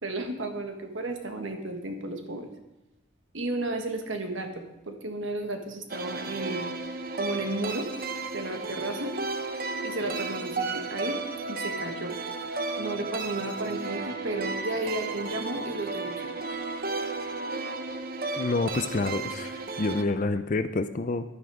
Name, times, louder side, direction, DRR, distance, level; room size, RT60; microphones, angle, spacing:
voice 1, 0.0-2.5 3.3-6.7 7.1-7.9 8.3-9.1 9.8-11.2 11.5-12.1 12.8-16.3, right 2 dB, 75° right, 5 dB, 1.5 m, -33 dB
sound 1, 5.9-20.0, right 3 dB, 45° right, 0.8 m, -33 dB
voice 2, 18.4-21.2, left 3 dB, 40° left, 10 dB, 0.5 m, -28 dB
11.5 x 9.4 x 4.9 m, 0.98 s
head